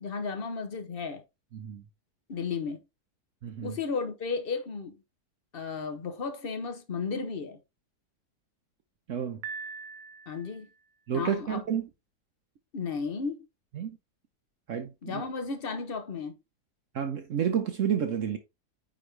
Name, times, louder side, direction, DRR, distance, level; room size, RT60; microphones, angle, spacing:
voice 1, 0.0-1.2 2.3-2.8 3.6-5.0 5.5-7.6 10.3-10.7 11.1-11.6 12.7-13.4 15.0-16.4, left 5 dB, 40° left, 1.0 m, -34 dB
voice 2, 1.5-1.8 3.4-3.8 9.1-9.4 11.1-11.9 13.7-14.0 14.7-15.2 16.9-18.4, right 8 dB, 60° right, 1.0 m, -30 dB
Piano, 9.4-10.7, right 5 dB, 80° right, 1.2 m, -41 dB
9.0 x 3.5 x 3.3 m
omnidirectional pair, 1.7 m